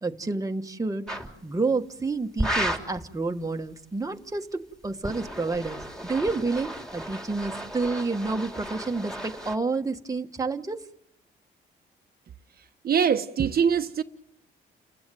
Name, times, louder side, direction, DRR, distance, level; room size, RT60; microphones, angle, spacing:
voice 1, 0.0-1.0 1.4-10.8, right 3 dB, 15° right, 1.4 m, -29 dB
sound 1, 1.1-1.3 2.4-3.0 4.8-9.6, right 1 dB, 5° left, 3.5 m, -33 dB
voice 2, 12.8-14.0, right 7 dB, 50° right, 1.1 m, -23 dB
30.0 x 16.0 x 9.3 m
cardioid pair, 90°, 20 cm